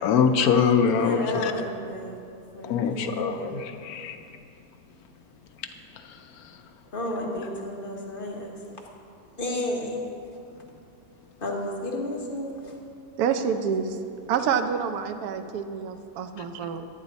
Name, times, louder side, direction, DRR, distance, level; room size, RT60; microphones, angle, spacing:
voice 1, 0.0-1.5 2.6-4.2 16.4-16.5, left 6 dB, 75° left, 6 dB, 1.0 m, -23 dB
voice 2, 0.9-2.2 2.5-3.5 6.9-8.8 9.4-10.0 11.4-12.7, left 1 dB, 35° left, -2 dB, 1.4 m, -32 dB
voice 3, 13.2-14.0 14.3-16.9, right 7 dB, 75° right, 8 dB, 1.1 m, -27 dB
9.7 x 9.7 x 4.1 m, 2.6 s
omnidirectional pair, 1.7 m